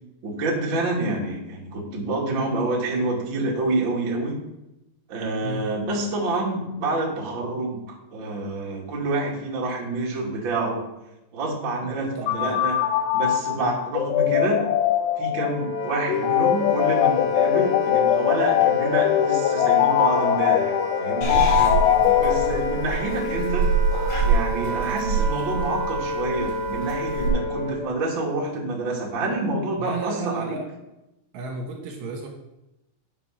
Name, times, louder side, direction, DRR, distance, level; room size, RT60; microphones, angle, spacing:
voice 1, 0.2-4.4 5.1-10.8 11.3-12.7 13.1-14.6 15.2-20.7 21.0-21.5 22.2-23.7 24.2-30.6, right 2 dB, 55° right, -3 dB, 1.3 m, -27 dB
voice 2, 11.8-12.7 13.6-13.7 21.5-22.2 29.8-30.7 31.3-32.3, right 3 dB, 70° right, 1 dB, 2.9 m, -33 dB
sound 1, 12.3-23.0, left 11 dB, 90° left, 3.4 m, -22 dB
Wind instrument woodwind instrument, 15.3-27.9, left 1 dB, 35° left, 4.1 m, -30 dB
Purr / Meow, 21.2-27.3, right 4 dB, 60° left, 4.5 m, -26 dB
8.6 x 7.3 x 5.8 m, 0.93 s
omnidirectional pair, 6.0 m